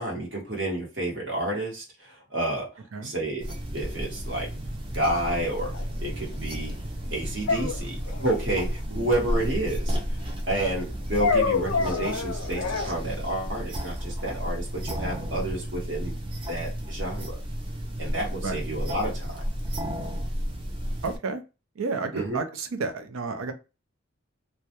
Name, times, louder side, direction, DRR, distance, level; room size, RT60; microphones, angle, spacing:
voice 1, 0.0-2.7 3.0-4.5 4.9-5.7 6.0-6.7 7.1-10.0 10.5-16.2 16.5-17.4 18.0-19.4 22.1-22.4, right 1 dB, 60° right, -2 dB, 1.0 m, -30 dB
sound 1, 3.4-21.2, equal, 25° right, 0.4 m, -32 dB
sound 2, 5.7-5.8 7.5-8.4 11.2-12.9, left 4 dB, 75° left, 0.5 m, -26 dB
voice 2, 21.0-21.4 21.8-23.5, right 4 dB, 85° right, 7 dB, 0.5 m, -31 dB
2.3 x 2.1 x 2.8 m, 0.29 s
head